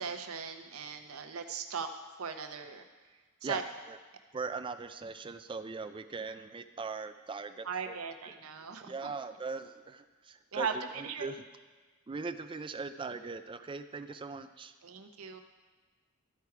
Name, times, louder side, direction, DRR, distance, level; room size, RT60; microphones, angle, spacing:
voice 1, 0.0-1.9 2.2-2.8 3.4-3.6 7.6-9.1 10.5-10.7 11.0-11.3 14.8-15.4, right 6 dB, 75° right, 6 dB, 0.7 m, -38 dB
voice 2, 4.3-8.0 8.2-8.3 8.9-11.4 12.1-14.7, right 4 dB, 25° right, 9 dB, 0.4 m, -40 dB
13.0 x 4.6 x 4.7 m, 1.4 s
head